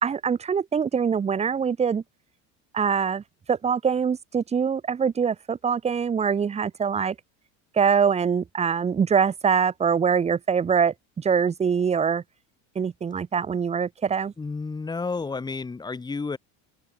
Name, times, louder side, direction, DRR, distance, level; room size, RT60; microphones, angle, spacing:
voice 1, 0.0-2.0 2.7-3.2 3.5-7.1 7.7-12.2 12.7-14.3, right 6 dB, 15° right, 1.2 m, -23 dB
voice 2, 14.4-16.4, left 4 dB, 10° left, 2.3 m, -31 dB
open air
cardioid pair, 160°, 37 cm